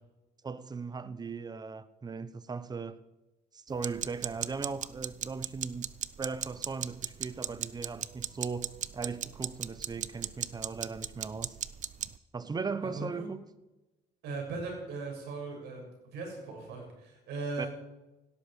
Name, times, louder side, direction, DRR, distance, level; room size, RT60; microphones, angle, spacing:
voice 1, 0.4-3.0 3.5-5.9 6.2-11.6 12.3-13.4 17.6-17.7, right 4 dB, 25° right, 1.0 m, -38 dB
sound 1, 3.8-12.2, right 10 dB, 45° right, 0.7 m, -37 dB
voice 2, 12.9-13.3 14.2-17.7, right 3 dB, 80° right, 6.7 m, -38 dB
17.0 x 12.5 x 5.0 m
cardioid pair, 110°, 17 cm